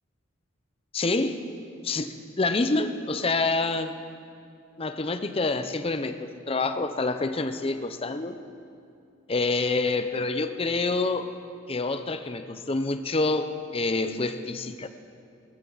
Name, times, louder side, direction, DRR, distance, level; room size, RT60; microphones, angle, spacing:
voice 1, 0.9-1.4 1.8-3.9 4.8-8.4 9.3-11.3 11.7-14.9, left 3 dB, 30° left, 9 dB, 0.6 m, -27 dB
19.5 x 14.5 x 4.0 m, 2.5 s
head